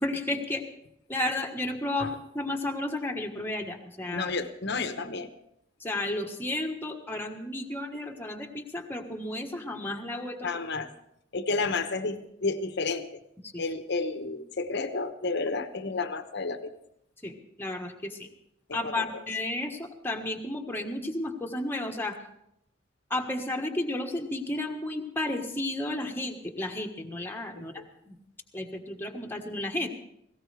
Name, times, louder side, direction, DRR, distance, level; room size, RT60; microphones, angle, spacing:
voice 1, 0.0-0.6 1.1-2.1 2.3-4.3 5.8-10.5 13.5-13.6 17.2-17.3 17.6-18.2 18.7-22.2 23.1-28.2 28.5-29.9, left 1 dB, 10° left, 2 dB, 1.4 m, -32 dB
voice 2, 4.1-5.3 10.4-10.9 11.3-13.2 13.6-16.8 18.7-19.2 27.6-27.9, left 3 dB, 60° left, 9 dB, 1.1 m, -31 dB
18.5 x 17.0 x 3.4 m, 0.78 s
head